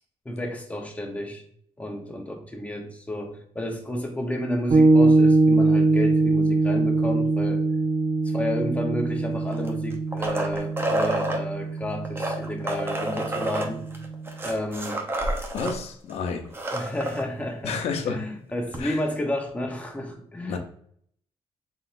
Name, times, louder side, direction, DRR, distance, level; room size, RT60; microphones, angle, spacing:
voice 1, 0.2-1.4 1.8-7.6 8.2-13.9 14.4-15.1 16.7-17.8 18.0-20.6, left 1 dB, 15° left, 0.9 m, -31 dB
sound 1, 4.7-14.4, right 3 dB, 60° right, 0.7 m, -23 dB
sound 2, 9.5-11.4 12.0-15.8 16.1-16.2 16.4-17.2 18.7-18.8, right 1 dB, 20° right, 0.7 m, -29 dB
voice 2, 15.5-16.5 17.6-18.2 18.8-19.0 20.5-20.6, left 5 dB, 85° left, 0.6 m, -30 dB
4.0 x 3.9 x 2.5 m
cardioid pair, 125°, 10 cm